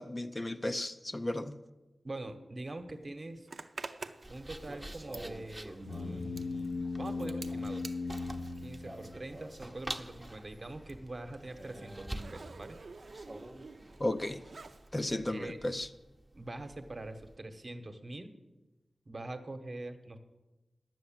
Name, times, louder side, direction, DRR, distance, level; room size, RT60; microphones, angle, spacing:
voice 1, 0.0-1.6 14.0-14.4 14.9-15.9, left 1 dB, 25° left, 8 dB, 0.5 m, -34 dB
voice 2, 2.0-3.5 4.3-7.9 8.6-12.8 15.3-15.6 16.3-18.3 19.1-20.2, right 2 dB, 40° right, 7 dB, 1.1 m, -44 dB
Zipper (clothing), 3.5-9.7 9.9-14.9, right 4 dB, 70° right, 0.6 m, -50 dB
sound 1, 4.2-17.4, right 1 dB, 15° right, 0.8 m, -47 dB
sound 2, 5.8-9.5, left 3 dB, 80° left, 0.6 m, -38 dB
10.5 x 7.8 x 7.3 m, 1.1 s
wide cardioid pair, 80°, 0 cm